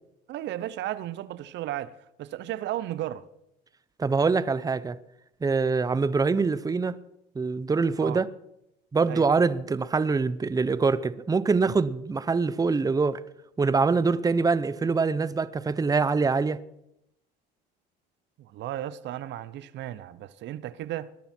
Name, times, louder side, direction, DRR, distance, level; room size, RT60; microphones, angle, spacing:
voice 1, 0.3-3.3 8.0-8.2 9.1-9.3 18.4-21.1, right 13 dB, 60° right, 0.9 m, -34 dB
voice 2, 4.0-5.0 5.4-7.0 7.4-8.3 8.9-13.2 13.6-16.6, right 4 dB, 15° right, 0.7 m, -24 dB
20.5 x 12.0 x 4.5 m
supercardioid pair, 80°, 21 cm